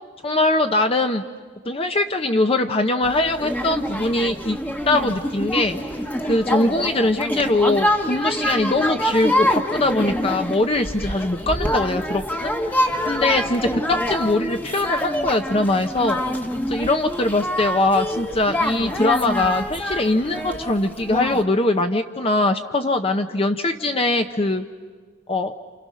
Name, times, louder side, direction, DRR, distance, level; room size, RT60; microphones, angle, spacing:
voice 1, 0.2-1.2 1.6-4.6 4.9-5.8 6.2-16.2 16.7-24.6 25.3-25.5, left 2 dB, 30° left, 6 dB, 0.8 m, -22 dB
Nepali Village Song, 3.0-21.4, equal, 10° left, 1.3 m, -26 dB
29.0 x 28.0 x 6.4 m, 1.5 s
head